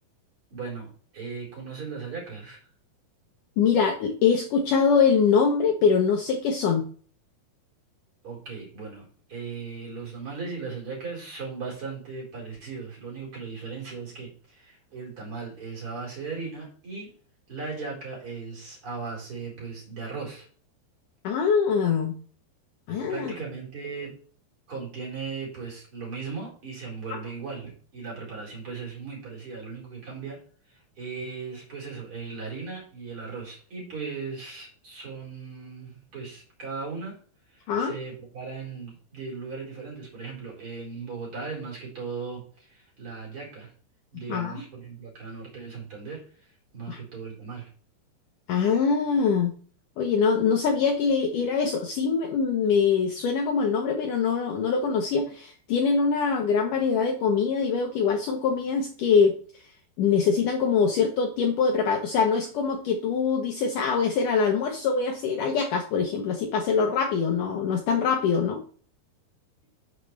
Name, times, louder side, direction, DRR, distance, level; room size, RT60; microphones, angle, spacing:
voice 1, 0.5-2.6 8.2-17.1 17.5-20.5 23.1-24.1 24.7-30.4 30.7-37.2 37.5-43.7 44.1-46.5 46.7-47.7, right 4 dB, 30° right, -3 dB, 5.0 m, -37 dB
voice 2, 3.6-6.8 21.2-22.1 22.9-23.3 37.7-37.9 44.3-44.6 46.9-47.0 48.5-49.5 50.0-59.4 60.0-68.6, left 6 dB, 85° left, 3 dB, 1.8 m, -23 dB
10.5 x 7.5 x 3.3 m, 0.43 s
omnidirectional pair, 5.2 m